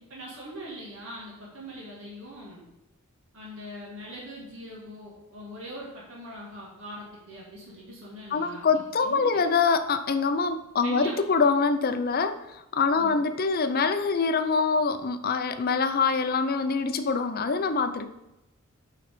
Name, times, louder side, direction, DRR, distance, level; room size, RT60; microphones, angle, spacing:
voice 1, 0.1-2.6 3.3-9.4 10.8-11.1 13.0-13.2, equal, 60° right, -5 dB, 2.4 m, -42 dB
voice 2, 8.3-12.5 12.7-18.1, left 4 dB, 45° left, 10 dB, 0.5 m, -25 dB
8.8 x 3.9 x 5.0 m, 0.92 s
head